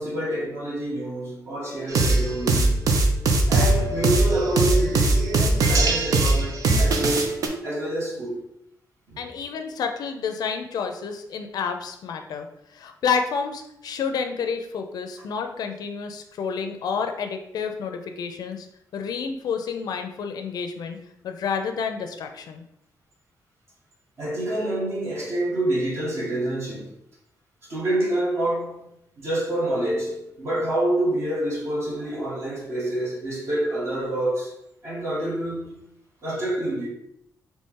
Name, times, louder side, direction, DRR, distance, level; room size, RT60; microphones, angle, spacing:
voice 1, 0.0-2.8 3.5-7.4 7.6-8.4 9.1-9.2 24.2-26.9 27.6-34.6 34.8-35.8 36.2-36.9, right 1 dB, 45° right, 1.6 m, -27 dB
sound 1, 1.9-7.5, right 2 dB, 60° right, 0.6 m, -20 dB
voice 2, 9.2-12.5 12.7-18.7 18.9-21.0 21.2-22.6, left 6 dB, 75° left, 0.5 m, -29 dB
4.2 x 2.9 x 3.6 m
wide cardioid pair, 180°, 7 cm